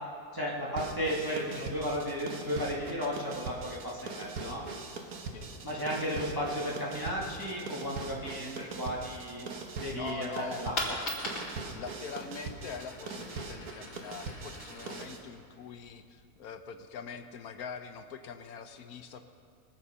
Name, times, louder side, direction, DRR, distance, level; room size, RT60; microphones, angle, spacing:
voice 1, 0.3-4.7 5.6-9.4 9.8-11.0, equal, 15° right, -5 dB, 1.9 m, -34 dB
sound 1, 0.8-15.2, right 4 dB, 70° right, 1.6 m, -42 dB
voice 2, 9.9-10.7 11.7-19.2, left 6 dB, 80° left, 7 dB, 1.3 m, -43 dB
Coin (dropping), 10.7-16.4, left 1 dB, 60° left, 2.8 m, -41 dB
22.5 x 7.5 x 5.6 m, 2.3 s
omnidirectional pair, 1.6 m